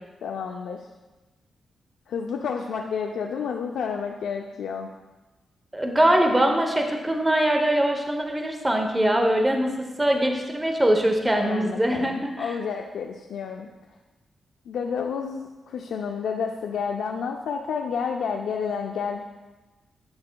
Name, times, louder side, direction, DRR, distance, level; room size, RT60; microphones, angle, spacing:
voice 1, 0.2-0.8 2.1-4.9 11.3-13.7 14.7-19.2, left 6 dB, 90° left, 2 dB, 0.4 m, -30 dB
voice 2, 5.7-12.5, right 1 dB, 15° right, 3 dB, 0.7 m, -22 dB
8.6 x 6.4 x 2.2 m, 1.1 s
cardioid pair, 95°, 0 cm